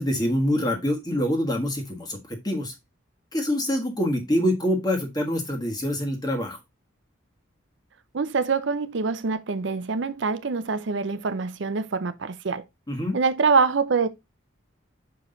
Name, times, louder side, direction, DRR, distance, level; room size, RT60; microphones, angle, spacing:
voice 1, 0.0-2.7 3.3-6.6 12.9-13.2, equal, 20° left, 1.4 m, -25 dB
voice 2, 8.1-12.6 13.1-14.1, right 4 dB, 60° right, 0.5 m, -25 dB
5.9 x 5.0 x 3.8 m
head